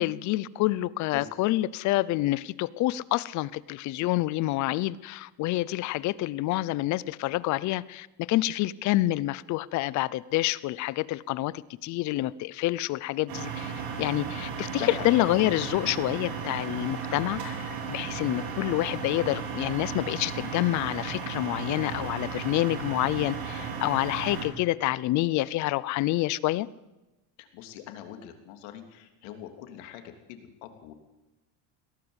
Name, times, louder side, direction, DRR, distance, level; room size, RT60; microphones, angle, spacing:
voice 1, 0.0-13.7 14.0-26.7, left 17 dB, 45° left, 20 dB, 0.6 m, -28 dB
sound 1, 13.3-24.4, right 6 dB, 70° right, 5.2 m, -35 dB
voice 2, 27.4-30.9, left 11 dB, 85° left, 6 dB, 3.2 m, -41 dB
22.0 x 17.5 x 8.1 m, 1.0 s
cardioid pair, 170°, 41 cm